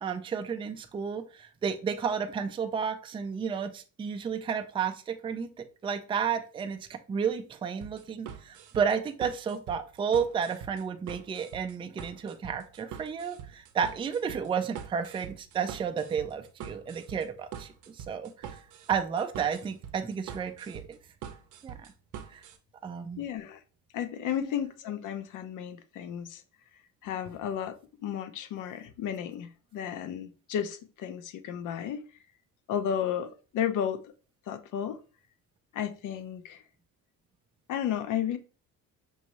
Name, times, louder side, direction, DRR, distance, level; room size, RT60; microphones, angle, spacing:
voice 1, 0.0-18.6 18.9-21.0 21.6-21.8 22.3-22.5 22.8-23.2 24.4-24.5, right 7 dB, 15° right, 0.4 m, -32 dB
sound 1, 7.8-22.6, right 8 dB, 60° right, 0.7 m, -44 dB
voice 2, 23.2-23.6 23.9-26.4 27.0-32.1 32.7-34.0 34.5-35.0 35.7-36.6 37.7-38.4, left 9 dB, 60° left, 0.6 m, -33 dB
5.4 x 2.6 x 3.0 m
cardioid pair, 120°, 35 cm